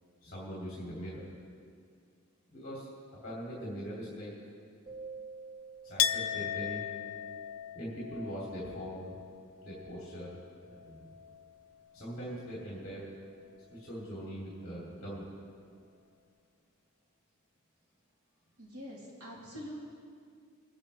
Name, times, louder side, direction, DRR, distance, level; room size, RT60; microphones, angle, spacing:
voice 1, 0.2-1.2 2.5-2.9 3.2-4.3 5.8-6.8 7.7-9.2 9.6-10.4 10.7-11.1 11.9-13.1 13.7-15.3, equal, 35° left, -7 dB, 2.8 m, -41 dB
sound 1, 4.9-7.1, right 4 dB, 25° right, 2.4 m, -48 dB
Chink clink, 6.0-11.5 11.8-12.7, left 9 dB, 65° left, 0.4 m, -37 dB
voice 2, 18.6-19.7, equal, 85° right, -6 dB, 3.4 m, -45 dB
22.5 x 9.9 x 3.3 m, 2.3 s
head